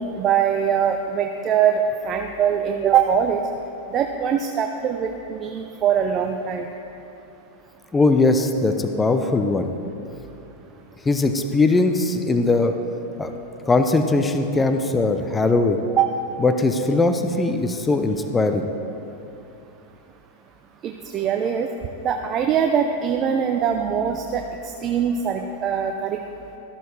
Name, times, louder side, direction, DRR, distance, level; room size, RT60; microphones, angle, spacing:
voice 1, 0.0-3.4 3.9-6.7 16.0-16.1 20.8-21.7 22.0-26.2, right 8 dB, 35° right, 4 dB, 0.6 m, -22 dB
voice 2, 7.9-9.7 11.1-12.7 13.2-13.3 13.7-15.8 16.4-18.6, left 3 dB, 15° left, 7 dB, 0.6 m, -20 dB
13.5 x 12.0 x 3.3 m, 2.9 s
figure-of-eight pair, 90°, 0 cm